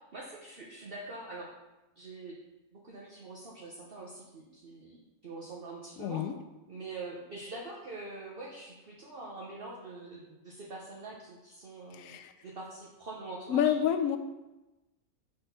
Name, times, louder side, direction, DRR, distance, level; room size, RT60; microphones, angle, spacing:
voice 1, 0.1-1.5 2.0-2.4 2.7-6.2 6.7-13.7, right 2 dB, 45° right, -4 dB, 1.0 m, -44 dB
voice 2, 6.0-6.3 11.9-12.3 13.5-14.2, left 9 dB, 70° left, 9 dB, 1.0 m, -28 dB
6.8 x 4.2 x 5.5 m, 1.0 s
omnidirectional pair, 1.5 m